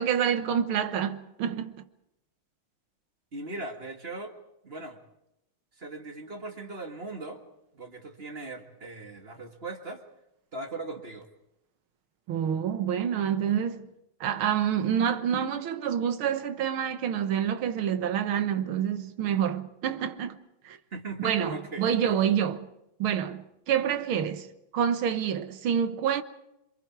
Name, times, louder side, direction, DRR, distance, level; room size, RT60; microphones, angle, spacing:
voice 1, 0.0-1.7 12.3-13.9 14.2-20.4 20.7-20.8 21.2-22.7 23.0-24.5 24.7-26.2, right 8 dB, 80° right, 2.0 m, -27 dB
voice 2, 3.3-4.4 4.6-5.0 5.8-7.4 7.7-10.0 10.5-11.3 20.9-22.2, right 2 dB, 30° right, 2.0 m, -39 dB
27.5 x 23.5 x 4.7 m
omnidirectional pair, 2.3 m